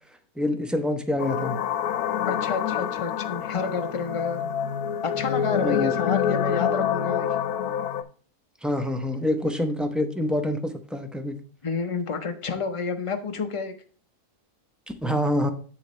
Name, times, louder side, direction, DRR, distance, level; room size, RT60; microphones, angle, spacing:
voice 1, 0.4-1.6 5.6-5.9 8.6-11.4 15.0-15.5, left 1 dB, ahead, 7 dB, 0.3 m, -26 dB
sound 1, 1.2-8.0, left 9 dB, 85° left, 1.2 m, -27 dB
voice 2, 2.3-4.5 5.0-7.3 11.6-13.7, left 5 dB, 25° left, 6 dB, 0.8 m, -29 dB
7.7 x 6.7 x 3.2 m, 0.41 s
omnidirectional pair, 1.5 m